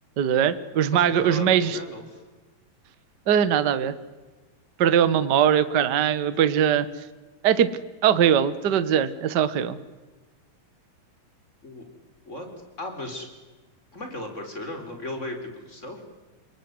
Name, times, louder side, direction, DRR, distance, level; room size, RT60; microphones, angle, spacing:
voice 1, 0.2-1.8 3.3-3.9 4.8-6.8 7.4-7.7 8.0-9.8, right 9 dB, 80° right, 13 dB, 0.9 m, -21 dB
voice 2, 0.9-2.2 11.6-11.8 12.2-12.5 12.8-13.3 13.9-16.0, left 1 dB, 20° left, 5 dB, 4.7 m, -36 dB
29.5 x 20.5 x 9.8 m, 1.2 s
omnidirectional pair, 4.1 m